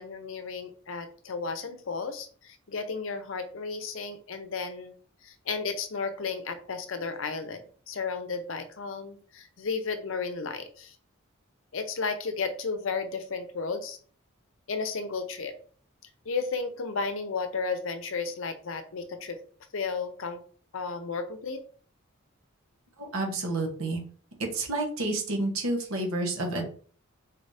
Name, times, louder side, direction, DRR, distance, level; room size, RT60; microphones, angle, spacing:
voice 1, 0.0-4.9 5.2-11.0 11.7-14.0 14.7-15.5 16.3-19.4 19.7-20.4 20.7-21.6, left 4 dB, 70° left, 9 dB, 0.6 m, -33 dB
voice 2, 23.0-24.0 24.4-26.6, right 2 dB, 90° right, 1 dB, 1.2 m, -29 dB
4.0 x 2.7 x 3.3 m, 0.44 s
head